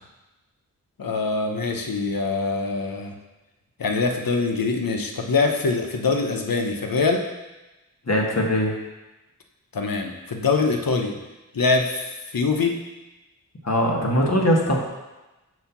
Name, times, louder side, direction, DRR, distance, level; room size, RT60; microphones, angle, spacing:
voice 1, 1.0-3.1 3.8-7.2 9.7-11.1 11.5-12.0 12.3-12.8, left 4 dB, 65° left, 3 dB, 0.9 m, -23 dB
voice 2, 8.0-8.8 13.6-14.8, equal, 45° left, -1 dB, 1.5 m, -21 dB
7.8 x 2.8 x 5.9 m, 1.1 s
cardioid pair, 40°, 37 cm